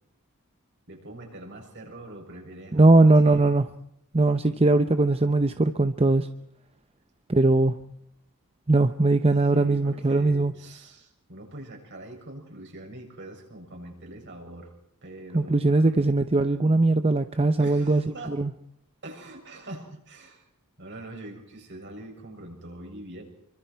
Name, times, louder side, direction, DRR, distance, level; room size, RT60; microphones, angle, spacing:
voice 1, 0.9-3.4 9.5-14.7 15.0-15.9 17.6-18.4 19.0-20.5 20.8-23.2, right 1 dB, 55° right, 2 dB, 7.1 m, -42 dB
voice 2, 2.7-3.7 4.1-6.3 7.3-7.8 8.7-10.5 15.3-18.0 18.3-18.5, right 2 dB, 25° right, 9 dB, 0.8 m, -20 dB
27.5 x 24.5 x 4.7 m, 0.74 s
head